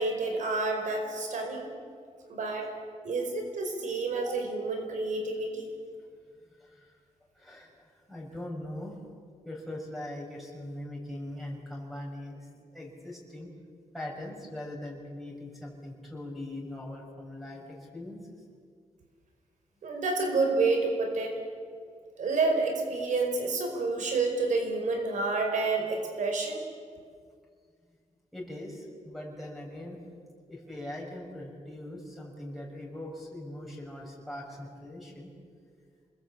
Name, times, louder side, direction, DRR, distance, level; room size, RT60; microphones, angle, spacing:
voice 1, 0.0-1.7 2.3-2.7 3.0-5.7 19.8-21.3 22.2-26.6, right 3 dB, 75° right, 4 dB, 4.9 m, -29 dB
voice 2, 7.4-8.9 9.4-12.4 12.7-13.5 13.9-17.7 17.9-18.2 28.3-30.0 30.5-35.3, left 1 dB, ahead, -1 dB, 6.3 m, -41 dB
27.5 x 21.0 x 8.6 m, 2.1 s
wide cardioid pair, 130°, 13 cm